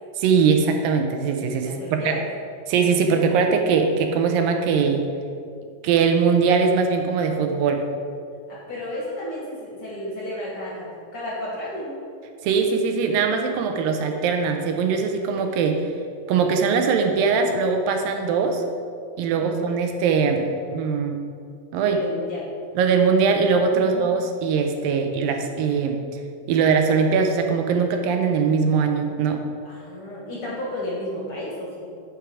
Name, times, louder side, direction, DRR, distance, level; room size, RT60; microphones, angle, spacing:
voice 1, 0.2-2.2 2.7-5.1 5.8-7.8 12.4-15.9 16.3-18.6 19.2-21.2 21.7-22.0 22.8-26.0 26.5-29.4, right 5 dB, 85° right, 4 dB, 2.5 m, -21 dB
voice 2, 1.6-2.2 8.5-12.0 19.3-19.6 21.8-22.5 23.7-24.3 29.6-31.7, left 1 dB, 45° left, -5 dB, 2.5 m, -33 dB
11.5 x 6.1 x 4.8 m, 2.3 s
omnidirectional pair, 4.0 m